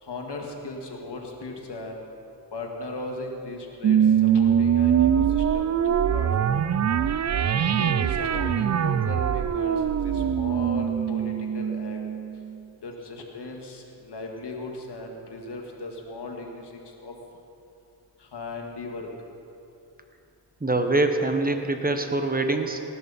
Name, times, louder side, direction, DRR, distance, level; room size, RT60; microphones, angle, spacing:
voice 1, 0.0-2.0 2.5-6.3 7.3-12.0 12.8-17.1 18.2-19.1, left 2 dB, 75° left, 1 dB, 2.0 m, -37 dB
sound 1, 3.8-12.6, right 9 dB, 40° right, 0.4 m, -23 dB
voice 2, 20.6-22.8, right 2 dB, 20° right, 6 dB, 1.3 m, -24 dB
18.5 x 11.5 x 4.2 m, 2.7 s
cardioid pair, 55°, 41 cm